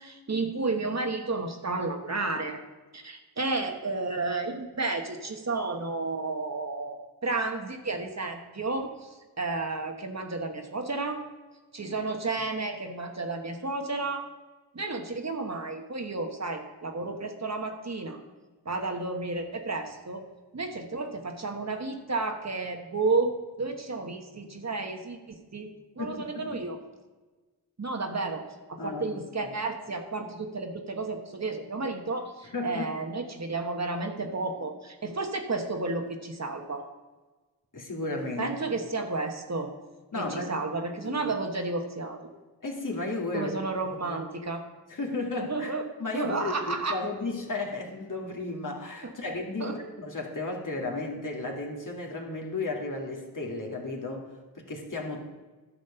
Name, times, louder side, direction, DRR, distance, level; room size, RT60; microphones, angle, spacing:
voice 1, 0.0-2.6 2.9-7.0 7.2-11.2 11.7-14.2 14.7-18.2 18.6-20.2 20.5-25.7 26.0-26.8 27.8-28.4 28.7-36.8 38.4-39.7 40.2-42.2 43.3-44.6 45.4-45.8 46.1-47.0 49.6-49.7, right 3 dB, 40° right, 4 dB, 1.3 m, -32 dB
voice 2, 26.0-26.6 28.8-29.5 32.5-32.9 37.7-38.6 40.1-41.3 42.6-43.5 44.0-44.2 44.9-45.7 46.0-54.3 54.6-55.3, left 2 dB, 50° left, 0 dB, 2.2 m, -34 dB
11.0 x 5.2 x 6.9 m, 1.3 s
cardioid pair, 45°, 41 cm